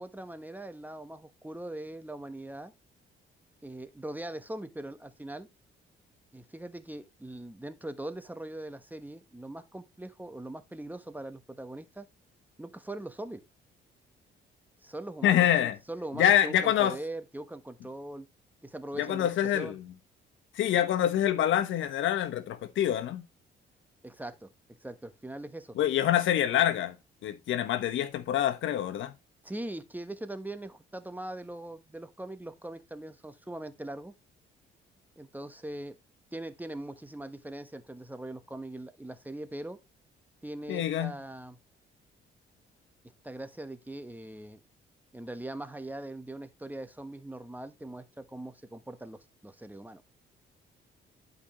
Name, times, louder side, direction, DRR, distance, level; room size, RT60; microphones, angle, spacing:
voice 1, 0.0-2.7 3.6-5.5 6.3-12.1 12.6-13.4 14.8-18.3 18.6-19.8 24.0-24.5 24.8-25.8 29.4-34.1 35.2-35.9 36.3-39.8 40.4-41.6 43.2-44.6 45.1-50.0, right 1 dB, 10° right, 1.2 m, -41 dB
voice 2, 15.2-15.7 16.2-17.0 19.0-19.8 20.5-23.2 25.8-26.9 27.2-29.1 40.7-41.1, left 11 dB, 80° left, 1.3 m, -26 dB
11.5 x 5.4 x 3.1 m
cardioid pair, 90°, 20 cm